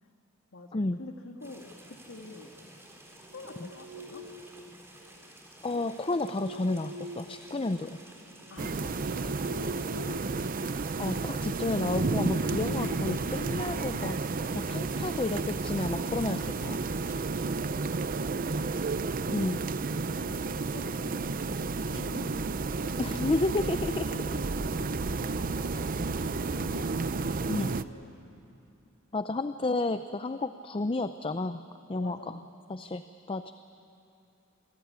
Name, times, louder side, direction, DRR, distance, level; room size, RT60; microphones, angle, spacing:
voice 1, 0.5-2.5 3.3-4.2 8.5-10.6 20.0-23.3 24.1-28.2 32.0-32.4, left 2 dB, 80° left, 3 dB, 1.8 m, -48 dB
sound 1, 1.4-17.1, right 1 dB, 15° right, 4.0 m, -52 dB
sound 2, 3.3-4.8 5.8-7.9 8.3-10.2 10.5-10.7 11.2-13.6, left 2 dB, 65° right, 1.7 m, -45 dB
voice 2, 5.6-8.0 11.0-14.2 14.5-16.8 19.3-19.6 23.0-24.1 27.5-27.7 29.1-31.6 31.9-32.4 32.7-33.0 33.3-33.6, left 2 dB, 25° left, 10 dB, 0.5 m, -31 dB
sound 3, 8.6-27.8, right 3 dB, 45° right, 0.6 m, -31 dB
27.5 x 19.5 x 9.5 m, 2.7 s
head